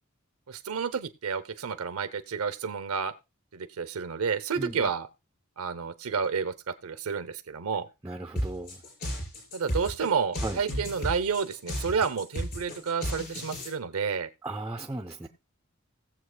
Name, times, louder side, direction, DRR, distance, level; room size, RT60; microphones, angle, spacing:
voice 1, 0.5-3.1 3.5-5.1 5.6-7.9 9.5-14.3, right 6 dB, 75° right, 0.8 m, -30 dB
voice 2, 4.6-4.9 8.0-8.8 10.4-10.6 14.4-15.3, right 2 dB, 10° right, 0.6 m, -36 dB
sound 1, 8.4-13.7, equal, 50° left, 5.9 m, -34 dB
19.5 x 7.4 x 2.3 m
head